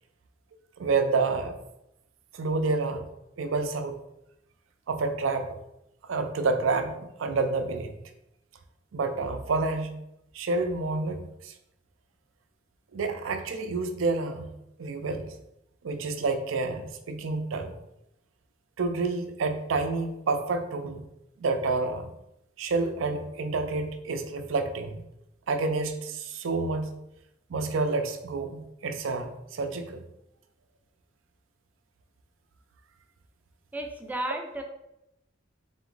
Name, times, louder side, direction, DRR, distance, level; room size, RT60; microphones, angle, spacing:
voice 1, 0.8-1.6 2.3-3.1 3.4-4.0 4.9-5.5 6.1-7.9 8.9-9.9 10.3-11.5 12.9-14.5 14.8-15.3 15.8-17.8 18.8-21.0 21.4-22.1 22.6-25.0 25.5-26.9 27.5-30.0, right 3 dB, 80° right, 8 dB, 0.5 m, -29 dB
voice 2, 33.7-34.6, right 1 dB, 10° right, 3 dB, 0.4 m, -33 dB
3.8 x 3.0 x 3.8 m, 0.86 s
head